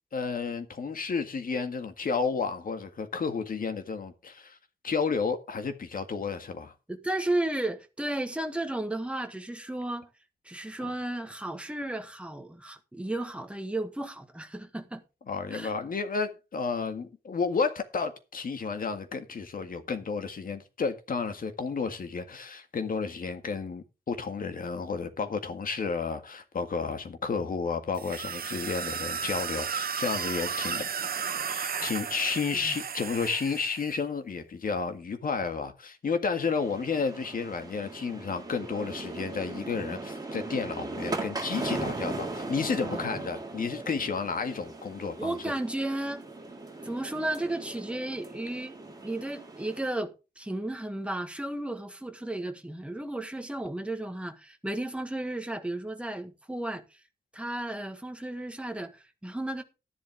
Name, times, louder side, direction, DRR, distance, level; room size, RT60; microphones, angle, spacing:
voice 1, 0.1-4.6 4.8-6.7 10.8-10.9 15.3-30.8 31.5-45.4, left 5 dB, 60° left, 1.9 m, -32 dB
voice 2, 6.9-10.1 10.4-15.0 15.5-15.8 32.6-32.8 42.9-43.2 45.2-46.2 46.8-57.0 57.3-59.6, right 1 dB, 5° right, 1.5 m, -34 dB
sound 1, 27.9-33.9, right 7 dB, 65° right, 1.1 m, -34 dB
sound 2, 36.4-49.9, right 2 dB, 25° right, 3.6 m, -38 dB
12.5 x 11.0 x 3.6 m
wide cardioid pair, 160°, 16 cm